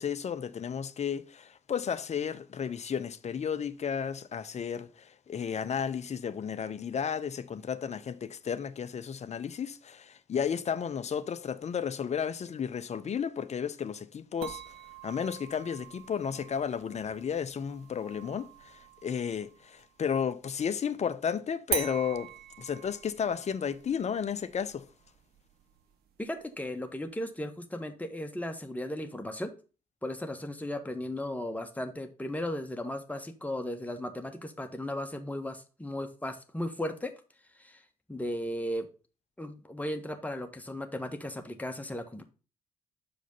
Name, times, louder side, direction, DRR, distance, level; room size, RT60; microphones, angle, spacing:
voice 1, 0.0-14.6 15.0-22.3 22.6-24.8, left 7 dB, 40° left, 0.7 m, -33 dB
sound 1, 14.4-20.0 21.7-26.7, right 9 dB, 65° right, 1.0 m, -43 dB
voice 2, 26.2-29.5 30.0-37.1 37.6-37.8 38.1-38.9 39.4-42.2, left 1 dB, 10° left, 1.4 m, -36 dB
6.8 x 5.0 x 5.4 m
hypercardioid pair, 45°, 18 cm